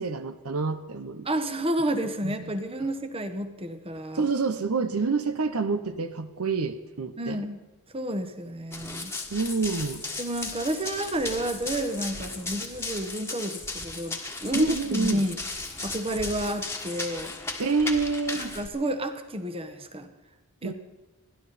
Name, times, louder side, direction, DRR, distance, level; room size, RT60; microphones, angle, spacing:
voice 1, 0.0-1.3 2.2-2.5 4.1-7.4 9.3-10.0 14.5-15.2 17.6-18.4 20.6-20.7, right 4 dB, 70° right, 9 dB, 0.9 m, -27 dB
voice 2, 1.2-4.3 7.2-7.6 7.9-9.1 10.2-15.4 15.8-17.3 18.3-20.1 20.6-20.7, right 1 dB, 25° right, 8 dB, 1.2 m, -30 dB
Run, 8.7-18.7, left 3 dB, 10° left, 1.6 m, -36 dB
29.5 x 11.5 x 4.2 m, 1.2 s
head